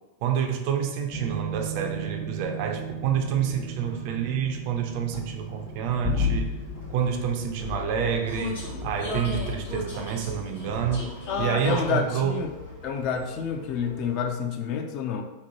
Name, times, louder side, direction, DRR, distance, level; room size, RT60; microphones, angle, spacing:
voice 1, 0.2-6.5 6.9-12.4, right 8 dB, 45° right, 5 dB, 0.3 m, -28 dB
sound 1, 1.1-12.6 12.9-13.2, left 1 dB, 25° left, 0.8 m, -34 dB
Vehicle, 3.0-14.5, left 2 dB, 70° left, 0.9 m, -40 dB
voice 2, 11.3-12.5 12.8-15.2, left 6 dB, 40° left, 5 dB, 0.3 m, -28 dB
2.9 x 2.1 x 2.8 m, 1.0 s
figure-of-eight pair, 90°, 0 cm